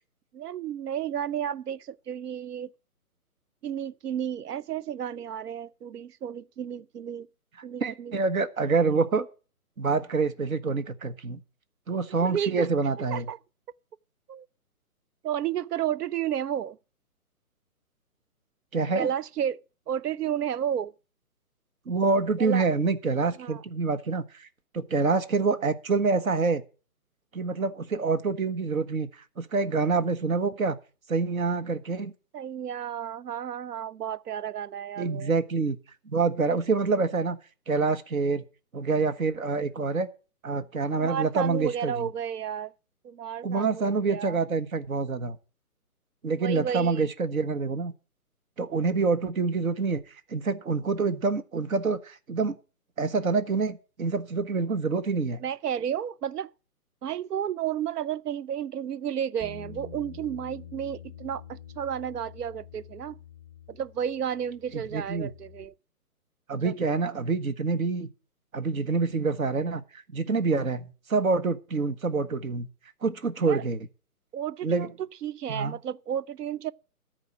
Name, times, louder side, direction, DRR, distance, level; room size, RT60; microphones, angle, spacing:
voice 1, 0.3-2.7 3.6-7.3 7.6-8.2 12.2-12.7 13.1-13.4 14.3-14.5 15.2-16.8 18.9-19.6 19.9-20.9 22.4-22.6 23.4-23.6 32.3-35.3 41.0-42.7 43.0-44.4 46.4-47.1 55.4-56.5 57.0-63.2 63.7-65.7 66.6-66.7 73.4-73.6 74.3-76.7, right 9 dB, 90° right, 0.6 m, -32 dB
voice 2, 7.8-9.3 9.8-11.4 11.9-13.2 18.7-19.1 21.9-24.5 24.7-26.6 27.3-29.1 29.4-30.8 31.1-32.1 35.0-35.8 36.1-37.4 37.7-38.4 38.7-40.1 40.4-42.1 43.4-45.4 46.2-47.9 48.6-50.0 50.3-52.6 53.0-55.4 64.7-65.3 66.5-68.1 68.5-72.7 73.0-73.8 74.6-74.9 75.5-75.8, right 4 dB, 65° right, 1.5 m, -26 dB
Bass guitar, 59.4-65.7, left 7 dB, 15° right, 1.9 m, -46 dB
13.5 x 4.9 x 8.5 m
hypercardioid pair, 165°, 45 cm